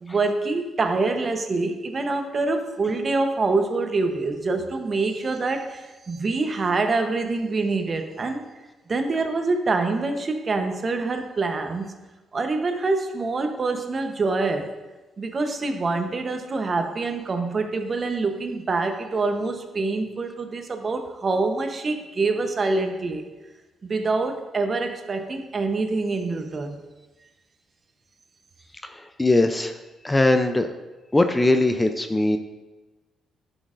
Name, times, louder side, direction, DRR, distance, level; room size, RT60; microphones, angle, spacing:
voice 1, 0.0-8.4 8.9-11.9 12.3-14.8 15.2-23.3 23.8-26.8, right 3 dB, 40° right, 5 dB, 0.9 m, -25 dB
voice 2, 28.8-29.8 30.0-30.7 31.1-32.4, left 2 dB, 15° left, 8 dB, 0.5 m, -20 dB
11.0 x 6.3 x 2.5 m, 1.2 s
cardioid pair, 90°, 0 cm